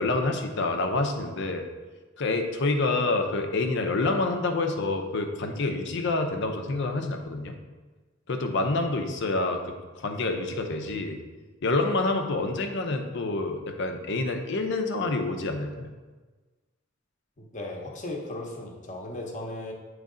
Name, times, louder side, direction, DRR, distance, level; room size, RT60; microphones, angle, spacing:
voice 1, 0.0-1.6 2.2-7.5 8.3-11.2 11.6-15.9, left 2 dB, 60° left, 4 dB, 0.6 m, -27 dB
voice 2, 17.4-19.7, left 1 dB, 35° left, 0 dB, 0.9 m, -36 dB
8.4 x 3.2 x 3.8 m, 1.3 s
head